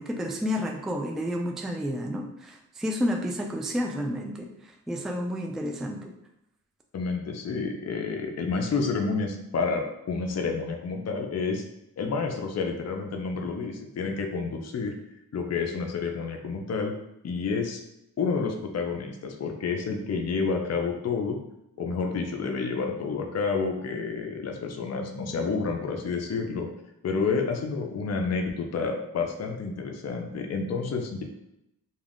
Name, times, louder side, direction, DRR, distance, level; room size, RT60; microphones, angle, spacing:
voice 1, 0.0-6.2, equal, ahead, 2 dB, 0.3 m, -31 dB
voice 2, 6.9-11.6 12.0-14.9 15.3-16.9 17.2-17.8 18.2-21.4 21.8-26.7 27.0-31.2, left 4 dB, 45° left, 2 dB, 0.5 m, -29 dB
2.3 x 2.3 x 3.4 m, 0.84 s
cardioid pair, 50°, 36 cm